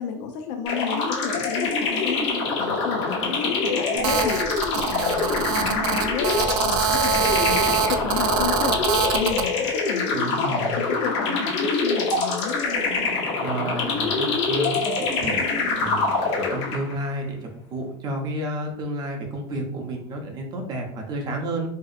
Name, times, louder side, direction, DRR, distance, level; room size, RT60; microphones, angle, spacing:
voice 1, 0.0-12.6, left 7 dB, 55° left, 4 dB, 0.4 m, -32 dB
sound 1, 0.7-17.0, left 4 dB, 90° left, 0.9 m, -25 dB
Telephone, 4.0-9.5, right 6 dB, 75° right, 0.4 m, -24 dB
voice 2, 10.1-10.8 13.4-15.5 15.8-21.7, right 1 dB, 30° right, 2 dB, 0.5 m, -31 dB
3.0 x 2.7 x 2.4 m, 0.69 s
cardioid pair, 165°, 14 cm